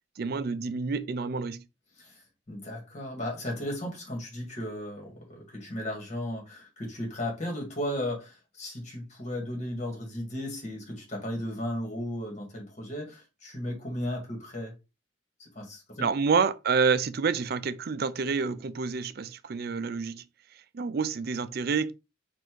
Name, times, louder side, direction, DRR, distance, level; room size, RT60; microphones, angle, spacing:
voice 1, 0.2-1.6 16.0-20.2 20.7-21.9, right 5 dB, 50° right, 0.4 m, -28 dB
voice 2, 2.0-14.7 15.4-16.1, left 1 dB, 35° left, 1.8 m, -35 dB
4.3 x 2.6 x 4.6 m
head